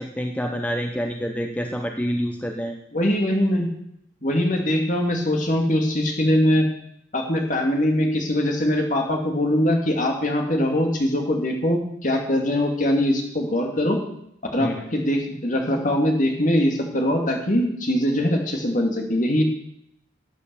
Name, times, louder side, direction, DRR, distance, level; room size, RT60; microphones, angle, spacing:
voice 1, 0.0-2.7 14.6-14.9, equal, 5° left, 4 dB, 0.7 m, -27 dB
voice 2, 2.9-3.7 4.2-6.7 7.1-14.0 14.5-19.4, left 1 dB, 40° left, 2 dB, 2.6 m, -22 dB
12.5 x 9.3 x 7.1 m, 0.73 s
head